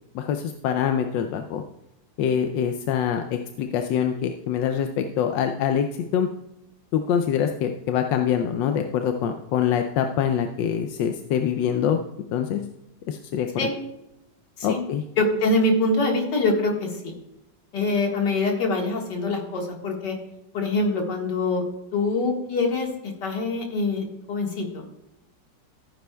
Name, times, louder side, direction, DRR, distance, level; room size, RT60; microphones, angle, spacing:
voice 1, 0.1-1.6 2.2-6.3 6.9-12.0 12.3-12.6 13.1-13.7 14.6-15.0, left 8 dB, 90° left, 6 dB, 1.3 m, -24 dB
voice 2, 15.2-17.1 17.7-20.2 20.5-21.6 21.9-24.8, left 2 dB, 70° left, 1 dB, 2.3 m, -24 dB
14.5 x 9.5 x 2.3 m, 0.88 s
omnidirectional pair, 1.9 m